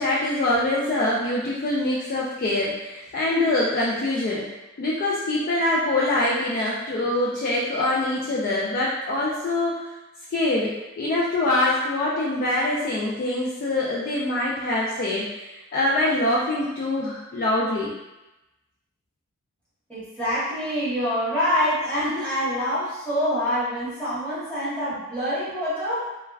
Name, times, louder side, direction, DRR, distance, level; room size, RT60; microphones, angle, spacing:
voice 1, 0.0-4.5 4.8-9.9 10.3-15.3 15.7-17.9, left 2 dB, 45° left, -5 dB, 0.3 m, -24 dB
voice 2, 19.9-26.1, equal, 5° left, -12 dB, 1.1 m, -26 dB
3.2 x 2.2 x 2.3 m, 1.0 s
head